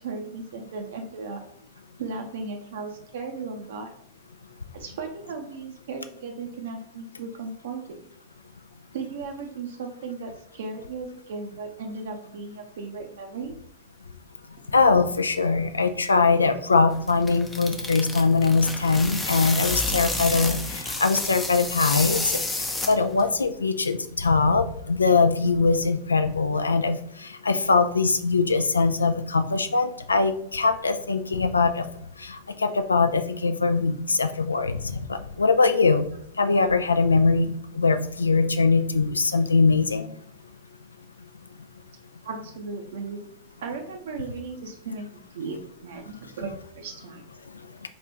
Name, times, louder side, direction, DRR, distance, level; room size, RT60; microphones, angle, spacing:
voice 1, 0.0-1.4 2.0-3.9 4.7-8.0 8.9-13.6 42.2-43.2 43.6-47.2, right 4 dB, 60° right, 3 dB, 0.6 m, -36 dB
voice 2, 14.7-22.2 22.9-27.0 27.4-31.9 32.6-34.8 35.1-36.1 36.4-40.1, left 4 dB, 75° left, 9 dB, 0.3 m, -22 dB
sound 1, 16.9-23.3, left 2 dB, 15° left, 0.5 m, -30 dB
4.2 x 2.4 x 3.4 m, 0.68 s
figure-of-eight pair, 90°, 0 cm